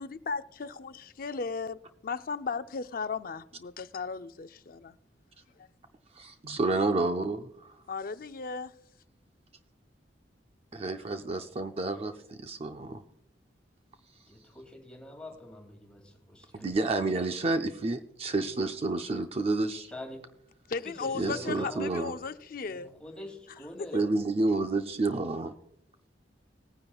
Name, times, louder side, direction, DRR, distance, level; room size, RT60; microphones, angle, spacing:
voice 1, 0.0-5.0 7.9-8.7 20.7-23.0 23.8-24.0, left 4 dB, 55° left, 0.5 m, -36 dB
voice 2, 6.1-7.7 10.7-13.0 16.5-19.9 21.1-22.1 23.9-25.5, right 2 dB, 35° right, 0.5 m, -30 dB
voice 3, 14.3-16.7 19.9-20.2 20.8-22.0 22.7-24.1, left 1 dB, 5° left, 2.6 m, -45 dB
19.5 x 9.8 x 2.4 m
head